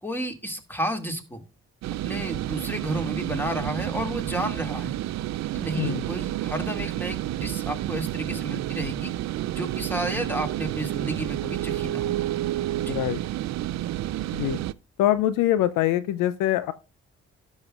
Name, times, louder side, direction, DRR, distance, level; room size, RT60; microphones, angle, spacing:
voice 1, 0.0-1.4 2.0-5.0 5.5-9.1 9.5-12.2 12.8-12.9, right 1 dB, 5° left, 2.2 m, -32 dB
sound 1, 1.8-14.7, right 14 dB, 55° right, 0.4 m, -30 dB
voice 2, 12.9-13.2 14.3-14.6 15.0-16.7, left 13 dB, 75° left, 0.5 m, -24 dB
16.5 x 6.2 x 2.4 m
hypercardioid pair, 40°, 32 cm